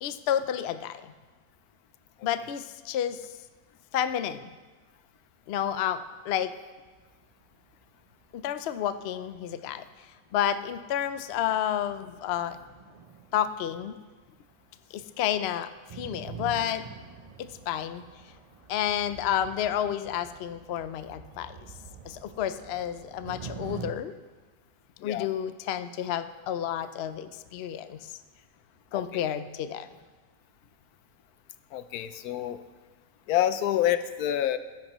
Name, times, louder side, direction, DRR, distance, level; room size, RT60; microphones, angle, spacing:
voice 1, 0.0-1.1 2.2-3.2 3.9-4.5 5.5-6.5 8.3-9.9 10.3-12.6 13.3-14.0 14.9-16.8 17.4-18.0 18.7-21.6 22.0-24.1 25.0-28.1 28.9-29.9, left 10 dB, 65° left, 11 dB, 0.6 m, -30 dB
sound 1, 6.8-7.8 8.2-8.4 9.2-9.3 9.9-10.0 10.3-14.6 14.9-23.9, right 6 dB, 55° right, 0.4 m, -46 dB
voice 2, 28.9-29.2 31.7-32.6 33.3-34.6, left 11 dB, 80° left, 12 dB, 1.1 m, -27 dB
17.5 x 10.5 x 3.0 m, 1.3 s
omnidirectional pair, 1.6 m